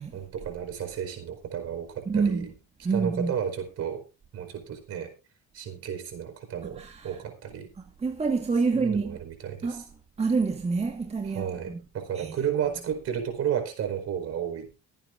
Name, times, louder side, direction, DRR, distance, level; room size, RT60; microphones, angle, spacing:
voice 1, 0.1-2.5 2.9-4.0 4.3-5.1 5.5-7.7 8.7-9.8 11.3-14.7, right 8 dB, 55° right, 4.7 m, -32 dB
voice 2, 2.0-2.5 2.8-3.3 6.6-7.1 8.0-9.2 9.6-9.8 10.2-11.8 12.1-12.4, right 4 dB, 20° right, 1.7 m, -27 dB
24.5 x 9.1 x 2.6 m
cardioid pair, 110°, 30 cm